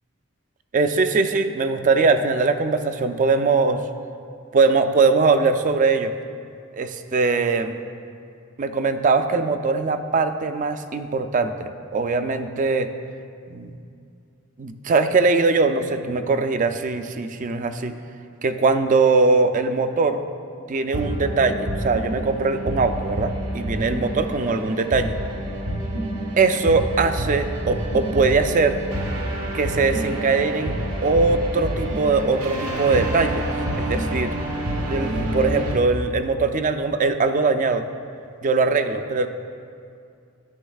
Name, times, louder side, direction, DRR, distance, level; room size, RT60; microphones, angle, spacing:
voice 1, 0.7-3.8 4.5-6.1 6.7-7.8 8.6-12.9 13.5-13.8 14.6-18.0 18.4-20.2 20.7-25.2 26.4-28.8 29.5-30.7 31.0-33.5 33.8-34.3 34.9-37.9 38.4-39.3, right 4 dB, 35° right, 9 dB, 0.4 m, -21 dB
sound 1, 20.9-35.8, right 1 dB, 90° right, 1.2 m, -28 dB
13.5 x 9.8 x 2.3 m, 2.4 s
head